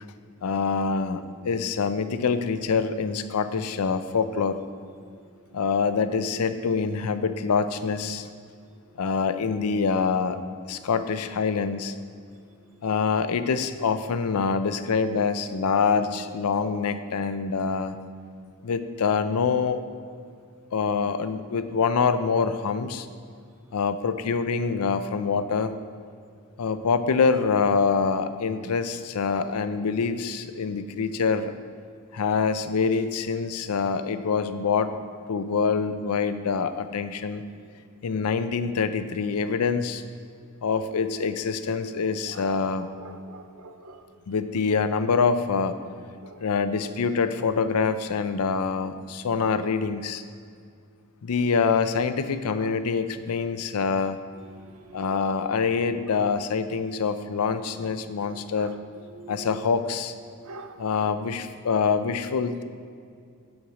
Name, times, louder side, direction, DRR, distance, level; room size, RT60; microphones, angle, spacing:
voice 1, 0.4-4.6 5.5-8.3 9.0-10.4 10.6-11.9 12.8-17.9 18.6-19.8 20.7-23.1 23.7-25.8 26.6-31.5 32.1-34.9 35.3-37.5 38.0-40.0 40.6-42.9 44.3-45.8 46.4-50.2 51.2-54.2 54.9-58.7 59.3-60.1 60.8-62.6, left 5 dB, 90° left, 11 dB, 0.5 m, -25 dB
voice 2, 43.0-44.0 46.2-46.4 52.6-52.7 53.8-53.9 54.6-55.2 58.2-58.7 59.2-59.5 60.4-60.7, right 3 dB, 75° right, 7 dB, 0.7 m, -45 dB
7.0 x 6.4 x 4.8 m, 2.3 s
head